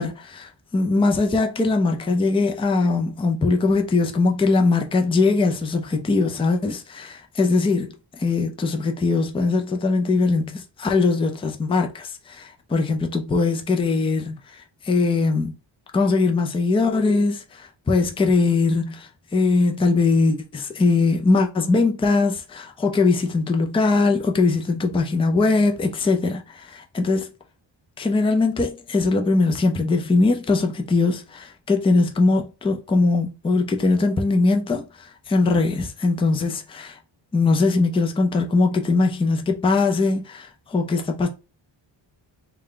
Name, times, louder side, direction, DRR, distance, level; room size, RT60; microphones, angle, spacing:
voice 1, 0.0-15.6 15.9-27.3 28.0-37.0 37.3-41.3, left 3 dB, 15° left, 0.4 m, -21 dB
3.6 x 2.3 x 3.6 m
wide cardioid pair, 160°, 45 cm